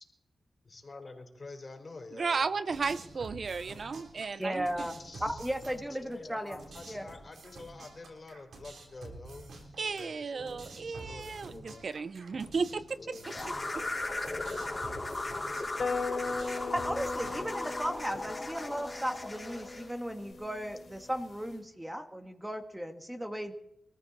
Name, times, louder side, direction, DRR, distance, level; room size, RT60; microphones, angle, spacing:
voice 1, 0.6-2.5 5.0-5.4 6.0-11.9 13.0-13.4, left 3 dB, 45° left, 4.3 m, -48 dB
voice 2, 2.1-4.9 9.8-13.2 13.7-13.8, right 5 dB, 65° right, 0.6 m, -34 dB
sound 1, 2.7-18.2, right 2 dB, 85° right, 3.6 m, -49 dB
voice 3, 4.4-4.9 5.2-6.6 6.9-7.0 16.7-23.5, equal, 10° right, 1.7 m, -36 dB
sound 2, 13.2-19.9, left 2 dB, 25° left, 4.3 m, -37 dB
sound 3, 15.8-21.6, left 4 dB, 60° left, 4.2 m, -39 dB
23.5 x 14.0 x 4.2 m
cardioid pair, 55°, 0 cm